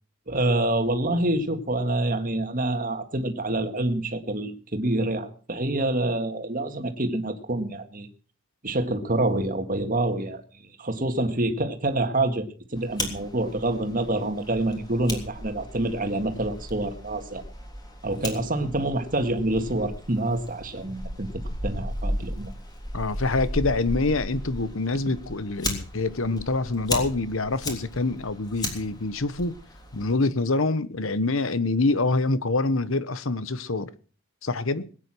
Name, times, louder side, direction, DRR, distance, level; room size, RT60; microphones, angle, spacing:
voice 1, 0.3-8.1 8.6-17.4 18.0-21.3 21.6-22.5, right 2 dB, 40° right, 1.9 m, -27 dB
Fire, 12.8-30.2, left 1 dB, 20° left, 3.4 m, -36 dB
voice 2, 22.9-29.5 29.9-33.9 34.4-34.9, left 3 dB, 65° left, 1.1 m, -25 dB
20.5 x 9.8 x 6.2 m
head